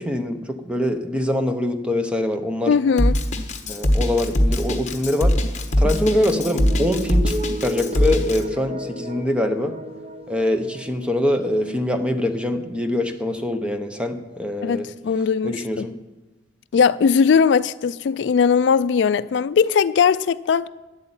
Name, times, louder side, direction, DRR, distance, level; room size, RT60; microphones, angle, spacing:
voice 1, 0.0-2.7 3.7-5.3 5.8-7.3 7.6-9.7 10.3-14.9 15.4-15.9, left 1 dB, 5° right, 0.8 m, -24 dB
voice 2, 2.7-3.1 14.6-15.9 16.7-20.7, left 6 dB, 65° left, 0.3 m, -19 dB
Drum kit, 3.0-8.4, left 1 dB, 40° left, 1.2 m, -21 dB
sound 1, 5.9-12.4, right 1 dB, 30° right, 1.0 m, -33 dB
11.0 x 8.2 x 8.7 m
head